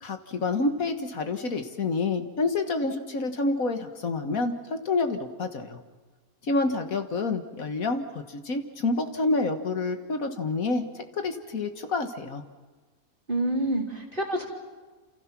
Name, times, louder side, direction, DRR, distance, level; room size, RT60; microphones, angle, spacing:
voice 1, 0.0-5.8 6.5-10.8 11.2-12.4, left 3 dB, 70° left, 7 dB, 2.0 m, -28 dB
voice 2, 13.3-14.5, right 1 dB, 35° right, 1 dB, 3.5 m, -27 dB
29.0 x 27.5 x 6.1 m, 1.3 s
omnidirectional pair, 1.6 m